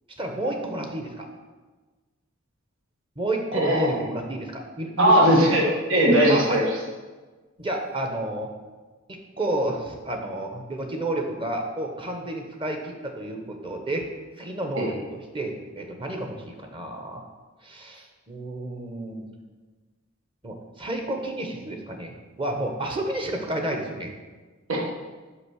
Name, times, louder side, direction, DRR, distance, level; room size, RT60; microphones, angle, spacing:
voice 1, 0.2-1.2 3.2-5.3 6.3-6.6 7.6-8.5 9.1-14.0 14.4-17.2 17.6-19.2 20.4-24.1, right 1 dB, 25° right, 3 dB, 1.0 m, -31 dB
voice 2, 3.5-4.0 5.0-5.6 5.9-6.6 14.8-14.9 24.7-24.8, equal, 75° right, -1 dB, 1.3 m, -19 dB
6.0 x 5.2 x 6.3 m, 1.3 s
head